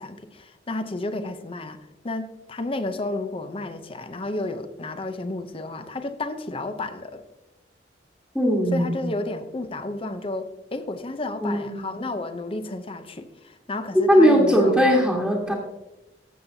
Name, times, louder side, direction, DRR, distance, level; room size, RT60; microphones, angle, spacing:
voice 1, 0.0-1.8 2.0-7.2 8.7-14.7, left 2 dB, 30° left, 9 dB, 0.7 m, -32 dB
voice 2, 8.3-9.0 11.4-11.9 14.1-15.5, equal, ahead, -4 dB, 1.5 m, -19 dB
14.5 x 7.4 x 2.7 m, 0.95 s
head